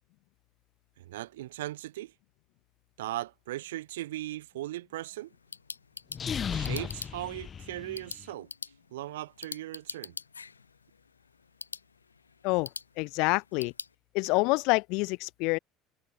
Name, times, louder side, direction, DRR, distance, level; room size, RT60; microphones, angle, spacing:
voice 1, 1.0-2.1 3.0-5.3 6.4-8.5 8.9-10.1, right 15 dB, 70° right, 1.3 m, -38 dB
sound 1, 5.2-13.9, left 5 dB, 80° left, 1.6 m, -45 dB
sound 2, 6.1-8.2, left 7 dB, 30° left, 4.0 m, -35 dB
voice 2, 13.0-13.7 14.1-15.6, left 27 dB, 55° left, 1.6 m, -27 dB
figure-of-eight pair, 65°, 0 cm